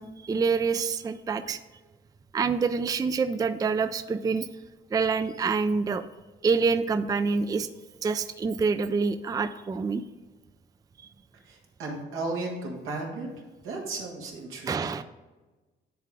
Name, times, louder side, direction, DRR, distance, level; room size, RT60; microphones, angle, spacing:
voice 1, 0.0-1.6 2.3-4.5 4.9-6.1 6.4-7.7 8.0-10.0 14.6-15.0, right 5 dB, 20° right, 11 dB, 0.3 m, -26 dB
voice 2, 11.5-13.3 13.6-14.7, right 2 dB, 90° right, -1 dB, 1.9 m, -34 dB
10.0 x 3.7 x 4.7 m, 1.2 s
cardioid pair, 90°, 20 cm